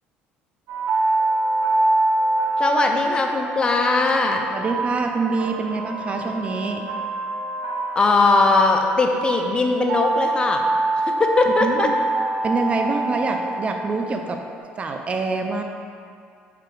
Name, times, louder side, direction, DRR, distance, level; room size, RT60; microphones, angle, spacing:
sound 1, 0.7-14.6, right 2 dB, 85° right, 0.9 m, -25 dB
voice 1, 2.6-4.4 8.0-10.6 11.1-11.9, left 3 dB, 25° left, 3 dB, 0.5 m, -19 dB
voice 2, 4.5-6.8 11.6-11.9 12.4-14.4 14.8-15.6, right 3 dB, 30° right, 4 dB, 0.4 m, -25 dB
5.0 x 4.7 x 4.5 m, 2.2 s
cardioid pair, 120°, 4 cm